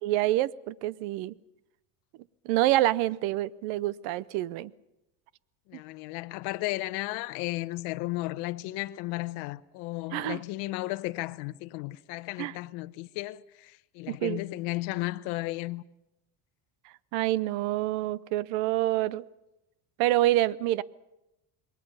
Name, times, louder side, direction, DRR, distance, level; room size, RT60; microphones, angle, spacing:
voice 1, 0.0-1.3 2.4-4.7 10.1-10.4 12.4-12.5 14.1-14.4 17.1-19.3 20.0-20.8, right 15 dB, 80° right, 0.8 m, -27 dB
voice 2, 5.7-15.8, left 19 dB, 75° left, 1.0 m, -34 dB
27.0 x 22.0 x 5.6 m
cardioid pair, 150°, 41 cm